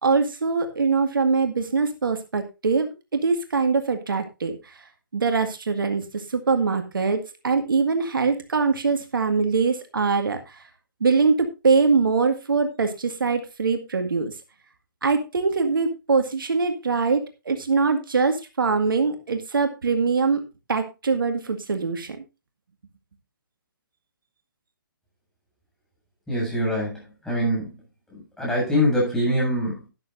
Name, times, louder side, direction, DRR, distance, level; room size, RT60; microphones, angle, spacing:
voice 1, 0.0-4.6 5.1-10.4 11.0-14.3 15.0-20.4 20.7-22.2, right 4 dB, 75° right, 6 dB, 2.0 m, -23 dB
voice 2, 26.3-27.7 28.4-29.8, equal, 5° left, -5 dB, 7.8 m, -23 dB
12.0 x 11.5 x 2.6 m, 0.27 s
hypercardioid pair, 145°, 11 cm